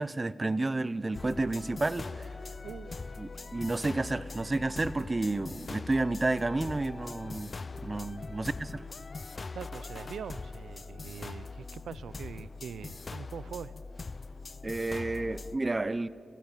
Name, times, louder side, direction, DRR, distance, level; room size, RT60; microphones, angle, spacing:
voice 1, 0.0-2.3 3.2-7.5 7.8-8.8 14.6-16.1, right 2 dB, 35° right, 18 dB, 0.8 m, -31 dB
sound 1, 1.1-15.6, left 3 dB, 50° left, 0.6 m, -42 dB
voice 2, 2.6-3.0 8.3-8.4 9.5-13.7, right 7 dB, 90° right, 18 dB, 0.6 m, -43 dB
29.0 x 17.0 x 7.4 m, 2.8 s
cardioid pair, 50°, 0 cm